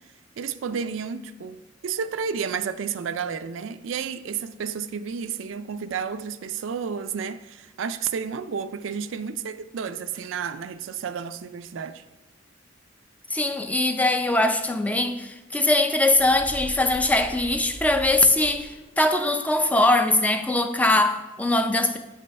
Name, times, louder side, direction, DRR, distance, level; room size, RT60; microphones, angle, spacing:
voice 1, 0.4-12.0, right 6 dB, 80° right, 0.4 m, -31 dB
voice 2, 13.3-22.0, left 2 dB, 10° left, 0.4 m, -22 dB
sound 1, 16.1-19.1, equal, 25° left, 1.2 m, -40 dB
8.6 x 5.3 x 5.3 m
head